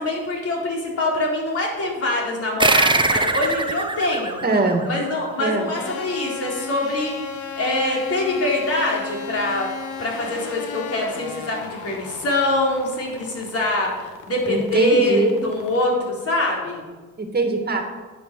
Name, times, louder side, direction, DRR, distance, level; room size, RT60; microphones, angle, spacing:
voice 1, 0.0-4.4 4.8-9.7 10.0-16.8, left 2 dB, 50° left, -2 dB, 4.2 m, -24 dB
sound 1, 2.6-5.6, right 3 dB, 15° right, 1.0 m, -22 dB
voice 2, 4.4-4.8 5.4-5.7 14.5-15.4 17.2-17.8, right 3 dB, 30° right, 4 dB, 2.0 m, -21 dB
sound 2, 5.7-15.9, left 5 dB, 80° left, 1.4 m, -35 dB
9.9 x 7.8 x 7.5 m, 1.3 s
cardioid pair, 90°, 30 cm